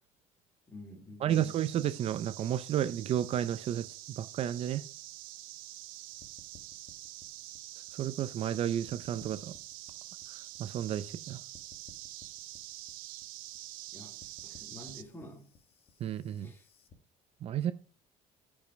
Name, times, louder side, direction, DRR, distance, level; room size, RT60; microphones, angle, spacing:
voice 1, 0.7-1.5 13.9-15.5 16.4-16.7, left 1 dB, 15° left, 2.6 m, -50 dB
voice 2, 1.2-4.8 7.9-9.5 10.3-11.4 16.0-16.5 17.4-17.7, right 10 dB, 45° right, 0.6 m, -32 dB
sound 1, 1.3-15.0, right 17 dB, 85° right, 0.7 m, -46 dB
sound 2, 6.2-8.6 8.9-11.2 11.5-16.9, left 4 dB, 40° left, 1.5 m, -59 dB
14.0 x 5.4 x 4.6 m
cardioid pair, 150°, 14 cm